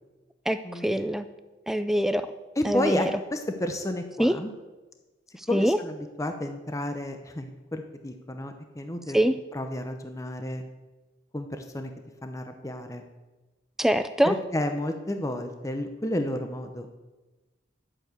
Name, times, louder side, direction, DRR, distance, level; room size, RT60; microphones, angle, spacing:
voice 1, 0.5-1.3 1.7-2.3 2.6-3.1 4.2-4.4 5.4-5.8 9.1-9.4 13.8-14.3, equal, ahead, 10 dB, 0.3 m, -24 dB
voice 2, 2.6-4.5 5.5-9.2 9.5-10.6 11.3-11.9 12.2-13.0 14.2-16.9, left 1 dB, 15° left, 6 dB, 0.7 m, -31 dB
12.0 x 7.1 x 8.0 m, 1.2 s
head